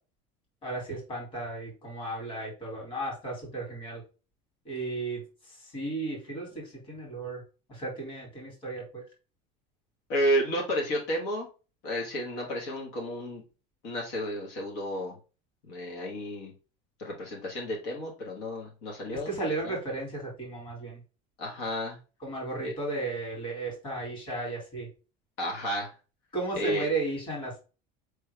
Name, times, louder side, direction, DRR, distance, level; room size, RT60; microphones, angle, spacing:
voice 1, 0.6-4.0 4.7-5.2 5.7-6.5 6.9-7.4 7.7-9.0 19.1-21.0 22.2-24.9 26.3-27.6, right 2 dB, 30° left, -1 dB, 2.2 m, -34 dB
voice 2, 10.1-11.5 11.8-13.4 13.8-15.1 15.7-16.5 17.0-19.3 19.6-19.7 21.4-22.0 22.6-22.7 25.4-25.9 26.6-26.9, equal, 65° left, -1 dB, 1.4 m, -31 dB
4.7 x 3.3 x 3.2 m, 0.33 s
cardioid pair, 170°, 17 cm